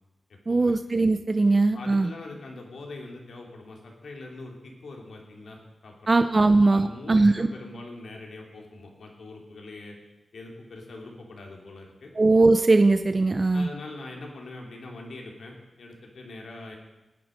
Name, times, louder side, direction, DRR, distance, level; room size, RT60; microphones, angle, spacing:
voice 1, 0.5-2.1 6.1-7.5 12.2-13.7, right 3 dB, 35° right, 8 dB, 0.7 m, -20 dB
voice 2, 1.7-10.0 10.3-12.1 13.5-16.8, left 2 dB, 80° left, 0 dB, 3.0 m, -42 dB
18.5 x 9.4 x 5.2 m, 1.0 s
wide cardioid pair, 85°, 0 cm